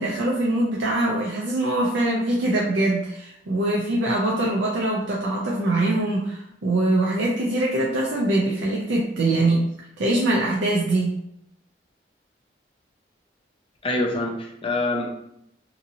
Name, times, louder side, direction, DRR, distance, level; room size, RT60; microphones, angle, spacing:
voice 1, 0.0-9.7 10.0-11.2, right 2 dB, 90° right, -3 dB, 0.5 m, -23 dB
voice 2, 13.8-15.1, left 2 dB, 30° left, 0 dB, 0.5 m, -25 dB
2.8 x 2.7 x 2.6 m, 0.77 s
head